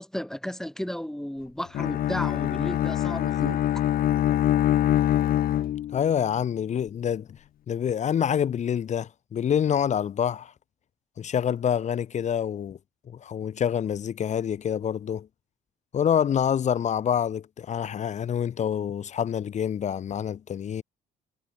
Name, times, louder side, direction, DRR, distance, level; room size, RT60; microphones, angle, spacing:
voice 1, 0.0-3.6, equal, 5° left, 3.9 m, -33 dB
Bowed string instrument, 1.7-6.2, left 12 dB, 60° left, 1.6 m, -24 dB
voice 2, 5.9-7.3 7.7-10.5 11.2-12.8 13.1-15.3 15.9-20.8, left 8 dB, 45° left, 1.3 m, -26 dB
cardioid pair, 110°, 17 cm